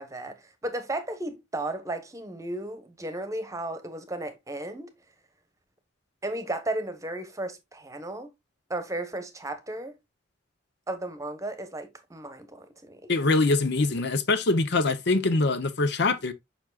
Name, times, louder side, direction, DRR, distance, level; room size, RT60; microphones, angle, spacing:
voice 1, 0.0-4.9 6.2-8.3 8.7-10.0 10.9-13.1, right 1 dB, 15° right, 1.0 m, -34 dB
voice 2, 13.1-16.3, left 3 dB, 65° left, 0.7 m, -23 dB
7.2 x 5.9 x 2.3 m
head